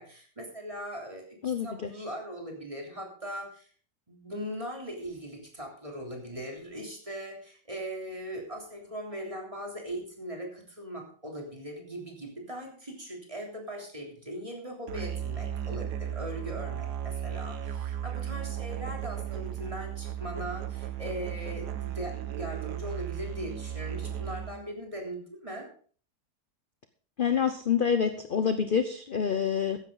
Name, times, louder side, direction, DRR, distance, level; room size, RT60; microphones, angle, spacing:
voice 1, 0.0-3.7 4.1-25.7, equal, 20° right, 0 dB, 3.4 m, -40 dB
voice 2, 1.4-1.9 27.2-29.8, left 7 dB, 40° left, 9 dB, 0.8 m, -27 dB
Musical instrument, 14.9-24.7, right 10 dB, 75° right, 1.6 m, -35 dB
14.5 x 10.5 x 4.0 m, 0.43 s
omnidirectional pair, 1.8 m